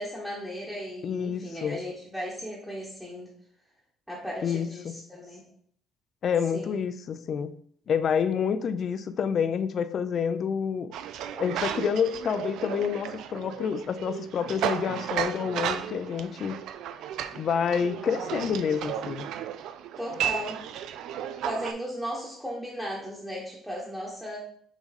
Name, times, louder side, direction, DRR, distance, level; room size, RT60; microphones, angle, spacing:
voice 1, 0.0-3.3 4.1-5.4 6.5-6.8 20.0-20.6 21.4-24.4, equal, ahead, -5 dB, 1.1 m, -36 dB
voice 2, 1.0-1.8 4.4-4.9 6.2-7.5 7.9-10.9 11.3-16.6 17.3-19.3, left 7 dB, 35° left, 12 dB, 0.4 m, -28 dB
sound 1, 10.9-21.7, right 10 dB, 65° right, 0.4 m, -34 dB
6.0 x 3.8 x 4.0 m, 0.62 s
cardioid pair, 175°, 0 cm